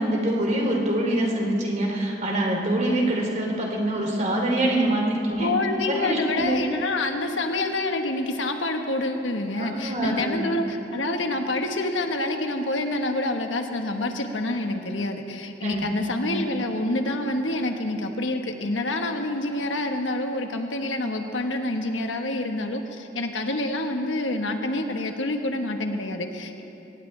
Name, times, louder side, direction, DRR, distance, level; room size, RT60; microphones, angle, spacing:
voice 1, 0.0-5.5 5.9-6.6 9.6-10.4 15.6-15.8 16.2-16.4, right 1 dB, 40° right, 0 dB, 2.7 m, -25 dB
voice 2, 5.4-26.6, left 2 dB, 85° left, 5 dB, 1.3 m, -27 dB
23.0 x 18.5 x 3.3 m, 3.0 s
head